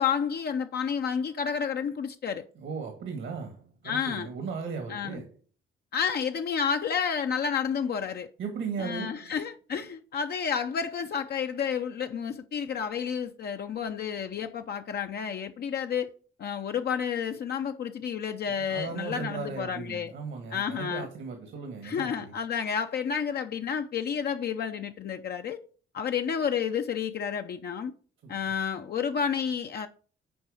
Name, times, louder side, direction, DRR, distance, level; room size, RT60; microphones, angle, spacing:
voice 1, 0.0-2.4 3.8-4.3 4.9-5.2 5.9-8.3 8.8-16.1 16.4-20.1 20.5-21.1 21.8-25.6 25.9-27.9 28.3-29.9, left 7 dB, 55° left, 0.6 m, -30 dB
voice 2, 2.6-5.3 8.4-9.3 18.7-22.3 28.2-28.4, right 5 dB, 75° right, 1.6 m, -37 dB
7.9 x 4.6 x 4.9 m
cardioid pair, 90°, 20 cm